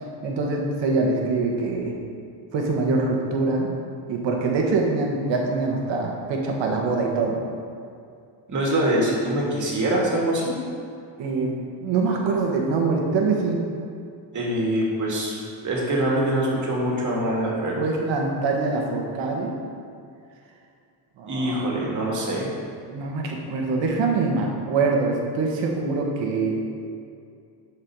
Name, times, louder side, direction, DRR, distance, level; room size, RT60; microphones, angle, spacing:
voice 1, 0.2-1.9 2.5-3.7 4.1-7.4 11.2-11.5 11.8-13.6 17.8-19.5 21.2-21.7 22.9-26.6, right 3 dB, 90° right, 0 dB, 1.5 m, -24 dB
voice 2, 8.5-10.5 14.3-17.8 21.3-22.5, right 1 dB, 45° right, -3 dB, 2.1 m, -24 dB
10.5 x 4.8 x 4.7 m, 2.4 s
cardioid pair, 145°, 43 cm